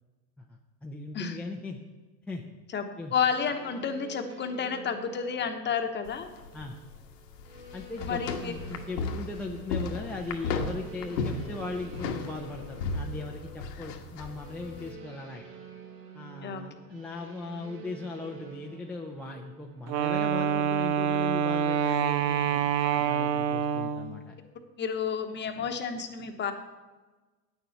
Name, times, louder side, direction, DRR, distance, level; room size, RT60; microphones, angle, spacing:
voice 1, 0.4-1.8 2.3-2.4 3.0-3.1 6.5-6.8 7.7-15.5 16.1-24.3, left 3 dB, 5° left, -1 dB, 0.5 m, -38 dB
voice 2, 3.1-6.3 8.1-8.5 16.4-16.6 24.8-26.5, left 6 dB, 20° left, 6 dB, 1.1 m, -30 dB
sound 1, 3.2-21.3, right 4 dB, 65° right, 3.1 m, -49 dB
sound 2, 6.0-14.9, left 4 dB, 70° left, 1.5 m, -35 dB
Wind instrument woodwind instrument, 19.9-24.2, right 8 dB, 85° right, 0.9 m, -26 dB
9.0 x 7.1 x 8.0 m, 1.2 s
hypercardioid pair, 120°, 49 cm